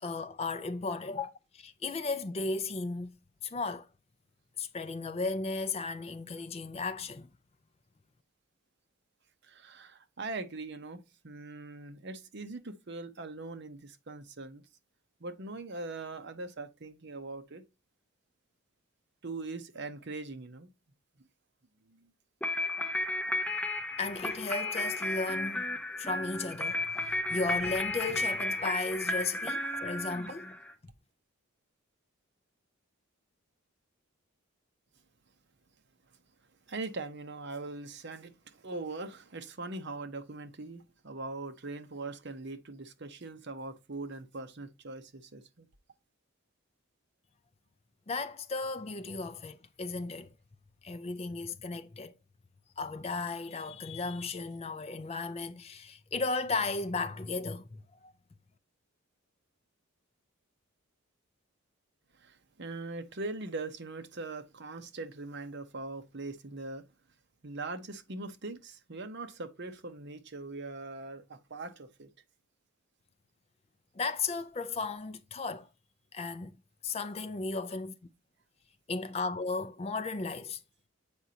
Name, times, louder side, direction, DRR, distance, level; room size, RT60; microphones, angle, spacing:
voice 1, 0.0-3.1 3.4-3.9 4.6-7.3 24.0-30.5 48.1-50.3 50.8-52.2 52.8-58.1 73.9-75.7 76.1-76.6 76.8-77.9 78.9-80.6, left 3 dB, 30° left, 0.4 m, -35 dB
voice 2, 9.5-14.6 15.2-17.6 19.2-20.7 21.9-22.1 36.7-45.7 62.2-66.9 67.4-72.1, right 3 dB, 50° right, 0.8 m, -41 dB
sound 1, 22.4-30.7, left 2 dB, 5° left, 0.9 m, -33 dB
8.0 x 5.0 x 2.8 m
head